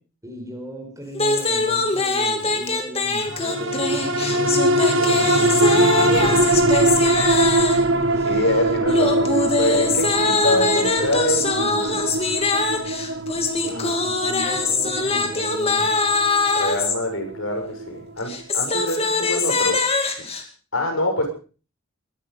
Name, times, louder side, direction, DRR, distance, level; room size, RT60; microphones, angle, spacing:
voice 1, 0.2-4.6 4.9-6.7 13.6-16.1, right 1 dB, 15° right, 3 dB, 4.4 m, -37 dB
sound 1, 1.1-7.9 8.9-17.0 18.2-20.4, left 3 dB, 25° left, 2.5 m, -23 dB
sound 2, 3.3-18.0 18.4-18.5, right 1 dB, 60° right, 1.5 m, -22 dB
voice 2, 8.2-12.2 13.7-14.0 16.5-19.8 20.7-21.3, left 1 dB, 65° left, 3 dB, 6.7 m, -25 dB
22.0 x 12.0 x 5.2 m, 0.38 s
head